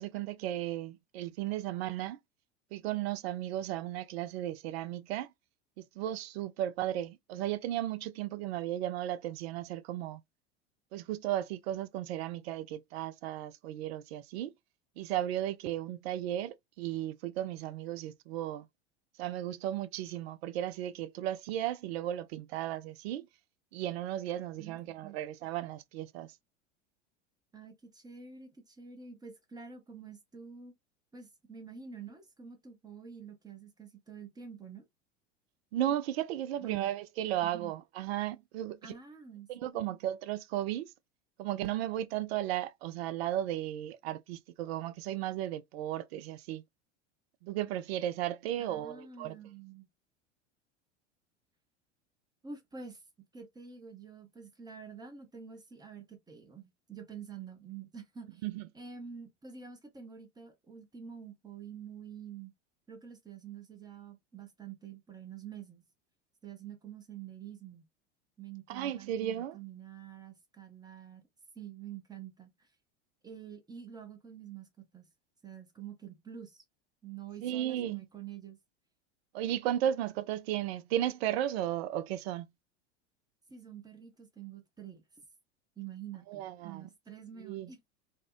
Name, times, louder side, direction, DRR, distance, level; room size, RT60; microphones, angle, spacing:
voice 1, 0.0-2.2 2.7-5.3 5.8-10.2 10.9-14.5 15.0-18.7 19.2-23.3 23.7-26.3 35.7-38.8 39.5-40.9 41.4-46.6 47.4-49.4 58.4-58.6 68.7-69.6 77.4-78.0 79.3-82.5 86.3-86.9 87.4-87.7, right 12 dB, 60° right, 0.5 m, -35 dB
voice 2, 24.6-25.2 27.5-30.7 31.1-34.9 36.6-36.9 37.4-37.7 38.8-39.9 48.6-49.9 52.4-53.0 53.3-58.5 58.7-62.5 62.9-65.8 66.4-67.9 68.4-71.2 71.5-72.7 73.2-75.1 75.4-76.6 77.0-78.6 83.5-85.0 85.8-87.8, right 7 dB, 10° right, 0.7 m, -47 dB
2.6 x 2.1 x 2.4 m
hypercardioid pair, 85°, 35 cm